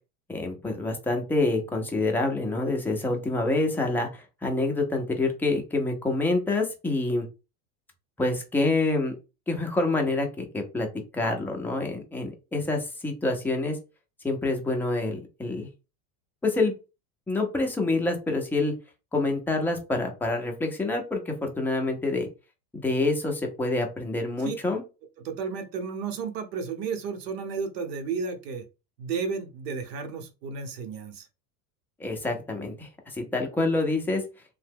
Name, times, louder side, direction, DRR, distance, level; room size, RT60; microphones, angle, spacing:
voice 1, 0.3-7.3 8.2-9.2 9.5-10.9 11.1-13.8 14.2-15.7 16.4-16.7 17.3-18.7 19.1-22.3 22.7-24.8 32.0-34.2, left 2 dB, 5° left, 2 dB, 0.3 m, -27 dB
voice 2, 25.2-28.6 29.0-31.3, right 5 dB, 80° right, 6 dB, 0.9 m, -33 dB
2.8 x 2.1 x 3.4 m, 0.29 s
supercardioid pair, 120°, 48 cm